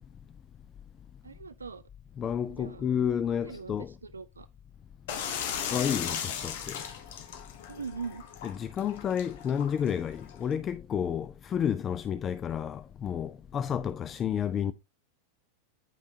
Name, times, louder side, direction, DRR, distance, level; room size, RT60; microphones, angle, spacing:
voice 1, 1.2-1.8 2.6-2.8 3.4-3.7 4.0-4.5 7.7-8.2 14.6-14.7, right 5 dB, 75° right, 0.3 m, -40 dB
voice 2, 2.2-3.9 5.7-6.8 8.4-14.7, left 8 dB, 25° left, 0.4 m, -31 dB
sound 1, 5.1-10.5, left 8 dB, 50° left, 1.1 m, -37 dB
9.2 x 5.5 x 2.7 m
figure-of-eight pair, 90°, 0 cm